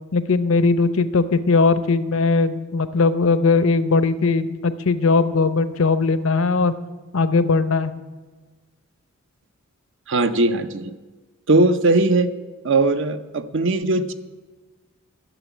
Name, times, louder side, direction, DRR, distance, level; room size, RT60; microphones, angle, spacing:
voice 1, 0.1-6.7 7.1-7.9, left 4 dB, 70° left, 12 dB, 0.7 m, -19 dB
voice 2, 10.1-10.9 11.5-12.3 12.6-14.1, right 2 dB, 60° right, 10 dB, 0.7 m, -19 dB
12.0 x 7.0 x 9.2 m, 1.3 s
head